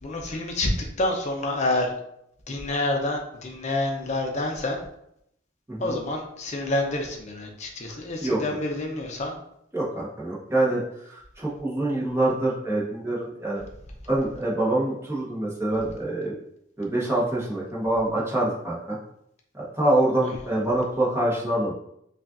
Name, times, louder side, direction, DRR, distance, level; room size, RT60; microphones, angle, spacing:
voice 1, 0.0-1.9 2.5-4.8 5.8-9.3, left 2 dB, 40° left, 1 dB, 0.7 m, -28 dB
voice 2, 7.9-8.4 9.7-13.6 14.1-16.3 16.8-19.0 19.5-21.7, right 1 dB, 15° right, -6 dB, 1.1 m, -25 dB
5.4 x 2.5 x 2.5 m, 0.75 s
head